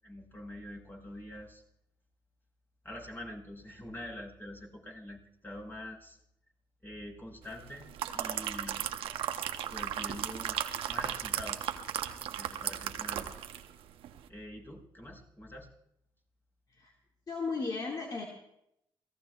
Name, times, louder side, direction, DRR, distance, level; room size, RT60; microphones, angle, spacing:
voice 1, 0.0-1.6 2.8-6.2 6.8-8.9 9.7-10.6 10.9-11.7 12.3-13.4 14.3-15.7, left 1 dB, 20° left, -2 dB, 7.2 m, -45 dB
sound 1, 7.7-13.7 14.0-14.2, right 10 dB, 80° right, 0.9 m, -36 dB
voice 2, 17.3-18.2, left 4 dB, 45° left, 0 dB, 2.2 m, -35 dB
28.0 x 18.5 x 2.5 m, 0.77 s
supercardioid pair, 55°, 9 cm